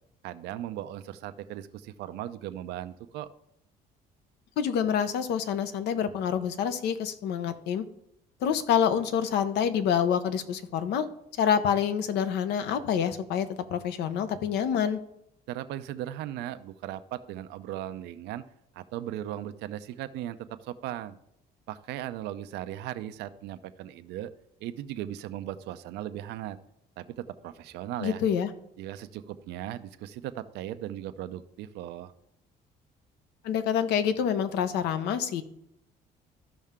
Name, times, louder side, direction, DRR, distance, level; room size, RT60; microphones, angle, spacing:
voice 1, 0.2-3.3 15.5-18.4 18.7-21.2 21.7-24.3 24.6-26.6 27.0-28.2 28.8-32.1, right 12 dB, 85° right, 11 dB, 0.6 m, -37 dB
voice 2, 4.6-7.8 8.4-11.1 11.4-15.0 28.0-28.5 33.4-35.4, left 8 dB, 80° left, 11 dB, 0.8 m, -27 dB
13.5 x 5.6 x 3.6 m, 0.76 s
cardioid pair, 110°, 17 cm